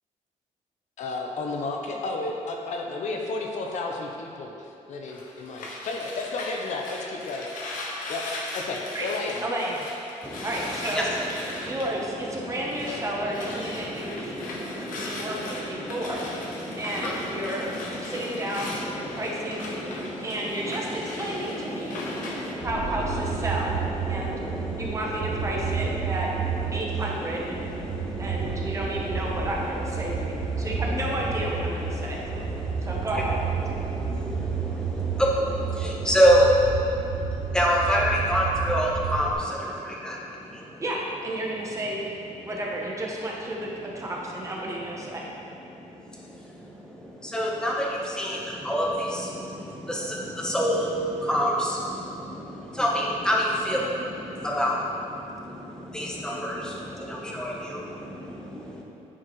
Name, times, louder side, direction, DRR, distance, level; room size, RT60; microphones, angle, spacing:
voice 1, 1.0-7.4 8.1-8.2 8.5-9.5, left 3 dB, 65° left, 1 dB, 0.7 m, -32 dB
sound 1, 5.1-13.0 13.3-22.5, left 2 dB, 90° left, 1.0 m, -38 dB
voice 2, 9.4-9.8 10.4-11.0 11.6-14.3 14.9-16.2 16.8-17.7 18.0-19.7 20.2-22.0 22.6-23.8 24.0-24.3 24.8-26.3 26.7-27.7 28.2-32.2 32.9-33.4 40.8-42.0 42.4-45.2, right 1 dB, 25° right, -3 dB, 0.9 m, -32 dB
voice 3, 10.2-40.8 41.6-42.6 43.6-44.1 44.8-58.8, equal, 5° left, -3 dB, 0.9 m, -29 dB
sound 2, 22.6-39.3, right 6 dB, 65° right, 0.5 m, -31 dB
9.6 x 4.7 x 3.1 m, 2.7 s
cardioid pair, 150°, 13 cm